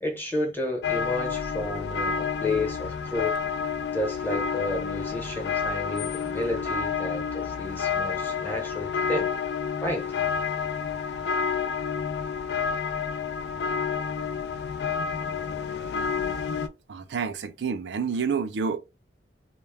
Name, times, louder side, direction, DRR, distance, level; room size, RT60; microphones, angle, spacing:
voice 1, 0.0-3.4 3.9-9.3 9.8-10.1, left 1 dB, 10° left, 0.9 m, -31 dB
sound 1, 0.8-16.7, left 6 dB, 65° left, 0.3 m, -29 dB
voice 2, 16.9-18.8, right 6 dB, 85° right, 0.4 m, -28 dB
2.2 x 2.1 x 3.3 m
head